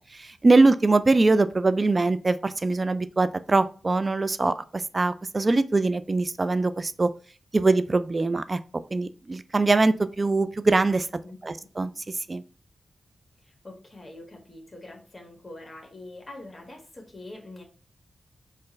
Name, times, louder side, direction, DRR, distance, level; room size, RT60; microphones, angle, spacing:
voice 1, 0.1-7.1 7.5-8.6 8.9-11.1 11.4-12.4, right 3 dB, 40° right, 13 dB, 0.3 m, -22 dB
voice 2, 11.2-11.7 13.4-17.6, left 2 dB, 35° left, 1 dB, 1.4 m, -44 dB
4.4 x 2.5 x 3.1 m, 0.40 s
cardioid pair, 50°, 0 cm